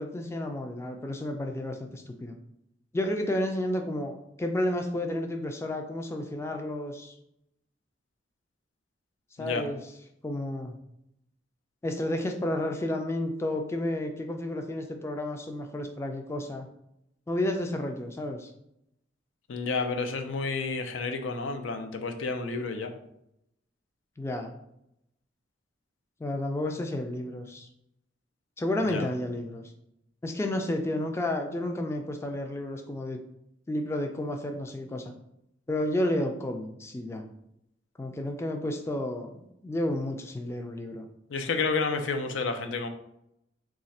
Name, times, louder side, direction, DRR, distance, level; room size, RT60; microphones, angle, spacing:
voice 1, 0.0-2.4 2.9-7.1 9.4-9.8 10.2-10.8 11.8-16.7 17.3-18.5 24.2-24.5 26.2-27.7 28.6-29.7 30.2-33.2 33.7-35.1 35.7-37.3 38.0-41.1, left 1 dB, 15° left, 4 dB, 0.3 m, -31 dB
voice 2, 19.5-22.9 28.8-29.1 41.3-42.9, left 4 dB, 85° left, 6 dB, 0.5 m, -30 dB
3.1 x 2.4 x 4.1 m, 0.79 s
head